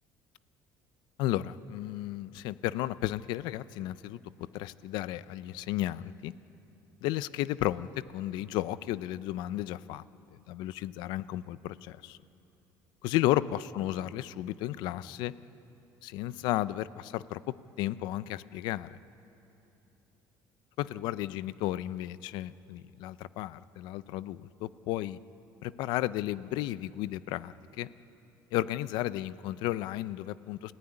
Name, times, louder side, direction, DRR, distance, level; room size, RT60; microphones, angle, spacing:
voice 1, 1.2-4.2 4.5-6.3 7.0-10.0 10.3-12.2 13.0-15.3 16.0-17.4 17.8-19.0 20.8-25.2 25.6-27.9 28.5-30.7, left 14 dB, 70° left, 16 dB, 0.6 m, -33 dB
28.5 x 15.5 x 10.0 m, 2.9 s
cardioid pair, 170°, 8 cm